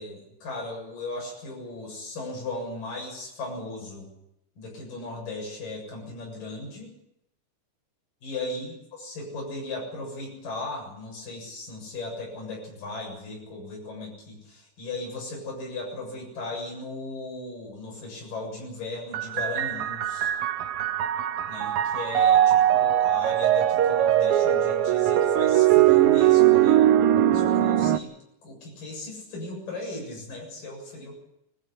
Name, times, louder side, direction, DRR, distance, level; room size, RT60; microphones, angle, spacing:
voice 1, 0.0-4.1 4.6-6.9 8.2-20.3 21.5-26.8 27.3-28.1 28.4-31.1, left 2 dB, 80° left, -1 dB, 9.1 m, -37 dB
sound 1, 19.1-28.0, right 12 dB, 90° right, 1.2 m, -21 dB
21.5 x 14.5 x 10.0 m, 0.81 s
omnidirectional pair, 3.9 m